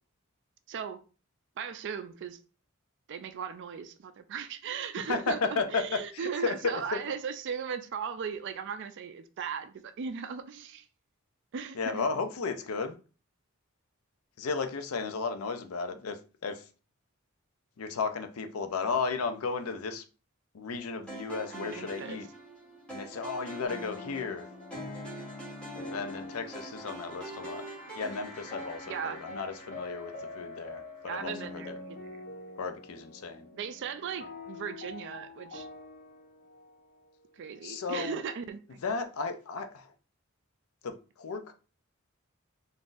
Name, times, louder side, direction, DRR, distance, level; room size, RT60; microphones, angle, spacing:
voice 1, 0.7-1.0 1.6-2.4 3.1-10.9 11.5-12.1 21.5-22.2 28.9-29.2 31.0-32.2 33.5-35.7 37.3-38.8, right 7 dB, 55° right, 0.4 m, -37 dB
voice 2, 5.1-7.0 11.8-13.0 14.4-16.6 17.8-20.0 20.5-22.3 22.9-24.5 25.9-27.6 27.9-31.8 32.6-33.5 37.6-38.2 38.8-39.9 40.8-41.5, left 4 dB, 80° left, 0.5 m, -34 dB
sound 1, 21.1-31.3, right 1 dB, 5° left, 1.1 m, -45 dB
sound 2, 23.6-37.6, left 2 dB, 40° left, 0.6 m, -45 dB
3.7 x 2.6 x 2.5 m
head